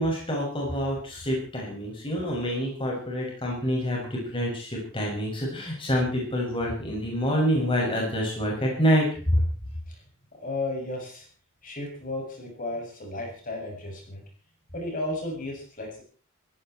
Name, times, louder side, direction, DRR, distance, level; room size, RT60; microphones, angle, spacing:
voice 1, 0.0-9.4, equal, 25° left, -2 dB, 6.8 m, -27 dB
voice 2, 10.3-11.3 11.6-14.2 14.7-16.0, left 2 dB, 40° left, 0 dB, 7.4 m, -34 dB
18.0 x 16.5 x 4.6 m, 0.39 s
head